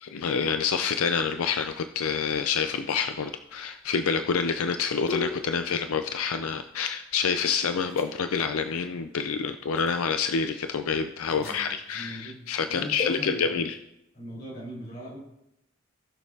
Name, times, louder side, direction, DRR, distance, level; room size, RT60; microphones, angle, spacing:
voice 1, 0.0-13.8, left 6 dB, 85° left, 8 dB, 0.5 m, -27 dB
sound 1, 2.9-7.4 7.8-8.1 9.8-10.0 11.2-11.7 12.9-13.2, left 4 dB, 70° left, 3.2 m, -38 dB
voice 2, 11.4-13.7 14.1-15.2, equal, 45° left, -6 dB, 3.6 m, -40 dB
18.0 x 6.3 x 2.8 m, 0.86 s
head